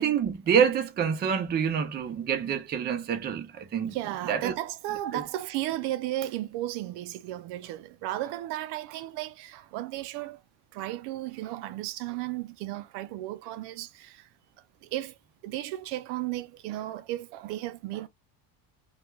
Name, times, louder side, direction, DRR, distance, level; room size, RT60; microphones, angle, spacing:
voice 1, 0.0-4.0 4.3-4.5 5.1-5.2, right 7 dB, 25° right, 0.4 m, -27 dB
voice 2, 3.9-10.4 10.7-14.2 14.9-15.1 15.4-18.1, right 15 dB, 80° right, 0.6 m, -34 dB
2.3 x 2.2 x 2.9 m
cardioid pair, 140°, 40 cm